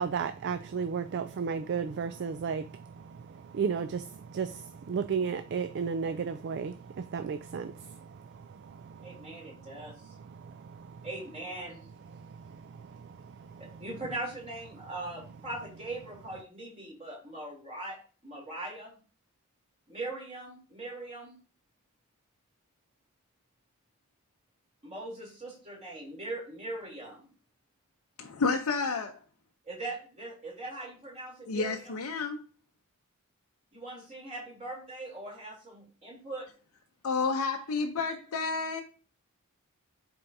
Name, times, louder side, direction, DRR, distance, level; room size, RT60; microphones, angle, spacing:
voice 1, 0.0-9.4 10.2-11.1 12.1-13.6, right 6 dB, 50° right, 0.3 m, -35 dB
voice 2, 9.0-10.1 11.0-11.9 13.6-19.0 19.9-21.4 24.8-27.3 29.6-31.9 33.7-36.5, right 2 dB, 30° right, 3.0 m, -40 dB
voice 3, 28.2-29.2 31.5-32.4 37.0-38.8, left 4 dB, 80° left, 0.6 m, -30 dB
11.0 x 4.5 x 2.7 m
head